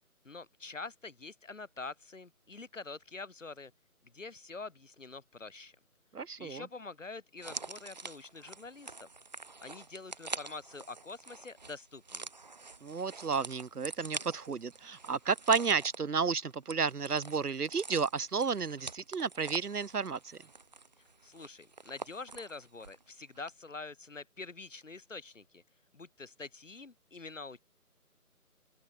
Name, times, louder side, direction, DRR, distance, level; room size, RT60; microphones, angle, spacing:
voice 1, 0.3-3.7 4.0-5.8 6.4-9.1 9.6-12.3 21.2-25.6 25.9-27.6, left 3 dB, 55° left, 1.8 m, -46 dB
voice 2, 6.1-6.6 12.8-20.4, right 5 dB, 90° right, 1.1 m, -32 dB
sound 1, 7.4-23.1 23.3-23.5, right 3 dB, 30° right, 3.8 m, -46 dB
open air
figure-of-eight pair, 175°, 45 cm